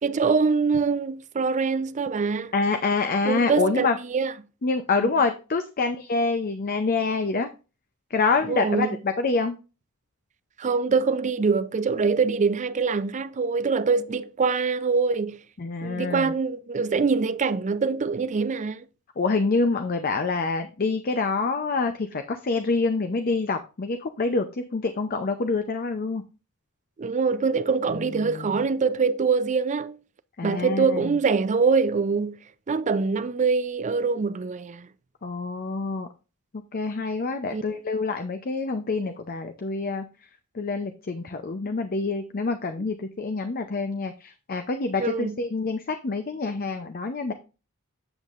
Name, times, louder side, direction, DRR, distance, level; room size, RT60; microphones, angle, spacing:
voice 1, 0.0-2.5 3.3-4.3 5.0-5.1 8.4-9.0 10.6-15.4 15.8-18.9 27.0-30.0 30.4-32.4 32.7-34.9 37.5-37.6 45.0-45.4, right 5 dB, 35° right, 0.4 m, -24 dB
voice 2, 2.5-4.0 4.6-7.5 8.1-9.6 15.6-16.3 19.2-26.2 27.9-28.5 30.4-31.1 35.2-36.1 36.5-40.0 40.5-47.3, left 3 dB, 45° left, 0.6 m, -26 dB
8.0 x 7.2 x 2.5 m
head